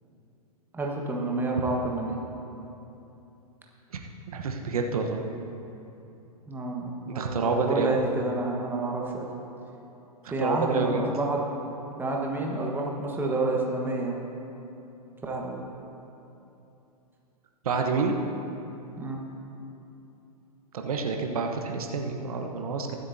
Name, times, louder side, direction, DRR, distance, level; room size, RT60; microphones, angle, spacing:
voice 1, 0.7-2.2 6.5-9.3 10.3-11.4 12.0-14.2 15.2-15.6 19.0-19.4, right 2 dB, 10° right, -1 dB, 1.3 m, -29 dB
voice 2, 4.3-5.2 7.1-8.0 10.2-11.0 17.6-18.1 20.7-22.9, right 4 dB, 65° right, 2 dB, 1.1 m, -28 dB
23.5 x 8.1 x 2.8 m, 2.9 s
figure-of-eight pair, 110°, 20 cm